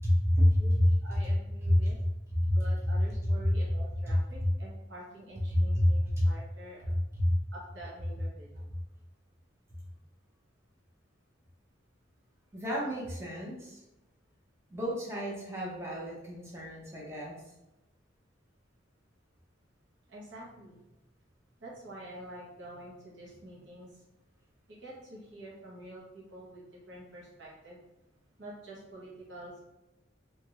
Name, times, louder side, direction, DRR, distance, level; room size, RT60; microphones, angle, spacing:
voice 1, 0.0-1.2 1.6-2.0 2.3-2.6 4.1-4.2 5.8-6.3 7.1-7.4 12.5-13.8 14.7-17.4, left 1 dB, 15° right, -4 dB, 0.6 m, -28 dB
voice 2, 0.6-2.0 2.5-7.0 7.5-8.6 20.1-20.8 21.6-24.0 24.7-27.8 28.4-29.6, right 1 dB, 65° right, -5 dB, 1.0 m, -47 dB
3.0 x 2.5 x 2.9 m, 0.97 s
head